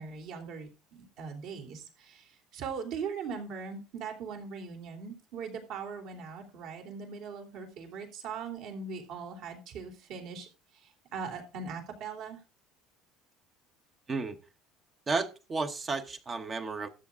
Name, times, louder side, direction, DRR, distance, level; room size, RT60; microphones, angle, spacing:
voice 1, 0.0-10.5 10.7-12.4, right 5 dB, 55° right, 3.3 m, -40 dB
voice 2, 15.1-16.9, right 3 dB, 20° right, 1.0 m, -32 dB
13.0 x 8.4 x 3.7 m
cardioid pair, 155°, 0 cm